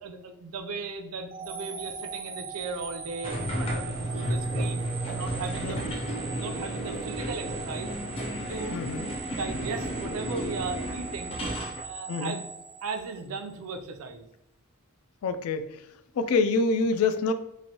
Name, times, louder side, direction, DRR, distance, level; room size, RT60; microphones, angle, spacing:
voice 1, 0.0-5.8 6.2-7.9 8.5-8.9 9.3-11.4 11.8-12.4 12.8-14.2, right 4 dB, 85° right, 6 dB, 0.5 m, -37 dB
sound 1, 1.3-13.5, right 5 dB, 25° right, 0.4 m, -41 dB
sound 2, 3.2-11.8, right 1 dB, 25° left, 0.6 m, -32 dB
voice 2, 8.7-9.1 12.1-12.4 15.2-15.7 16.2-17.3, left 4 dB, 85° left, 10 dB, 0.4 m, -26 dB
3.1 x 2.5 x 2.8 m, 0.86 s
head